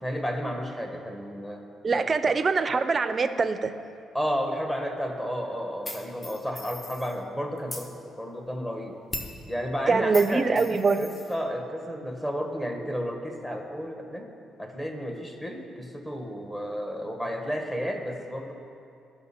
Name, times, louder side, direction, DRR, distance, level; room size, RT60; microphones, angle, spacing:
voice 1, 0.0-1.6 1.9-2.4 4.1-9.0 9.5-10.7 11.0-14.3 14.6-18.5, equal, 15° left, 3 dB, 1.3 m, -32 dB
voice 2, 1.8-3.7 9.9-11.0, right 4 dB, 35° right, 11 dB, 0.5 m, -23 dB
sound 1, 5.8-7.2 7.6-7.9 9.1-9.4 10.1-11.3, left 1 dB, 30° left, 1.1 m, -38 dB
14.0 x 5.9 x 4.3 m, 2.6 s
cardioid pair, 90°, 0 cm